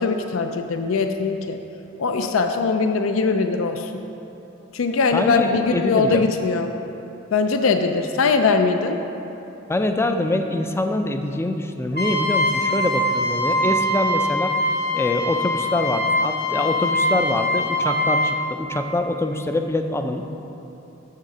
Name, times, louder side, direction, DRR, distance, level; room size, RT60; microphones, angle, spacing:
voice 1, 0.0-1.6 2.0-3.9 4.7-6.7 7.3-9.0, left 4 dB, 70° left, 6 dB, 0.4 m, -21 dB
voice 2, 5.1-6.3 9.7-14.5 14.9-20.2, left 1 dB, 10° left, 6 dB, 0.4 m, -24 dB
Trumpet, 11.9-18.4, left 1 dB, 50° left, 1.3 m, -23 dB
6.6 x 6.6 x 6.1 m, 3.0 s
head